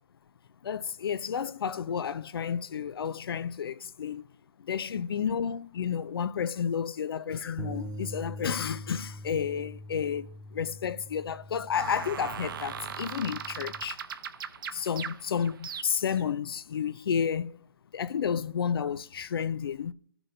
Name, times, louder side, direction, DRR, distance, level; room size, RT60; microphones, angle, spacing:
voice 1, 0.6-4.2 4.6-14.0 14.7-17.6 17.9-19.9, left 7 dB, 65° left, 0.4 m, -31 dB
sound 1, 7.6-13.8, equal, 15° right, 0.4 m, -43 dB
sound 2, 11.7-16.2, right 7 dB, 60° right, 0.8 m, -39 dB
13.0 x 6.0 x 2.6 m
hypercardioid pair, 145°, 13 cm